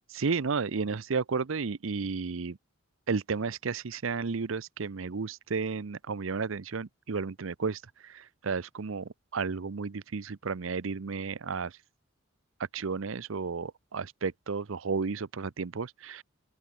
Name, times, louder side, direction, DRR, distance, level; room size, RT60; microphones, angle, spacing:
voice 1, 0.1-2.6 3.1-11.7 12.7-16.2, right 4 dB, 75° right, 0.7 m, -33 dB
open air
head